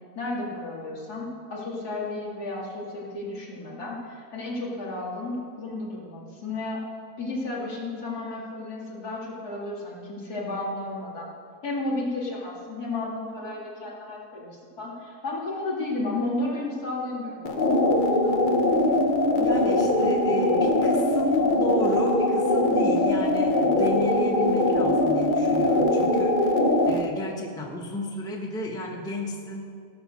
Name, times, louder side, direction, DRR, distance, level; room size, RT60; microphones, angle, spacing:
voice 1, 0.1-6.8 7.2-11.3 11.6-18.4, left 2 dB, 75° left, -5 dB, 2.8 m, -33 dB
sound 1, 17.4-27.1, left 1 dB, 45° left, 0.7 m, -22 dB
voice 2, 19.4-29.6, left 1 dB, 5° left, 0 dB, 1.0 m, -33 dB
16.0 x 6.4 x 6.3 m, 2.2 s
omnidirectional pair, 1.7 m